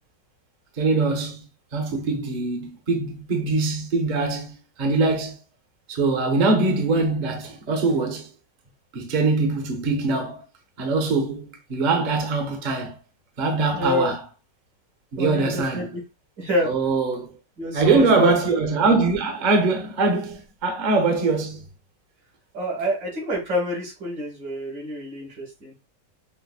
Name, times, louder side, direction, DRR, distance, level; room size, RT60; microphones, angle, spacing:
voice 1, 0.8-1.5 1.7-5.4 5.9-8.3 8.9-10.4 10.8-12.9 13.4-14.2 15.1-15.9 16.6-17.3 17.7-21.6, right 3 dB, 50° right, 0.5 m, -22 dB
voice 2, 13.7-14.1 15.2-16.0 16.4-16.7 17.6-18.4 22.5-25.7, left 1 dB, 75° right, 2.3 m, -27 dB
5.6 x 2.0 x 2.3 m
omnidirectional pair, 1.9 m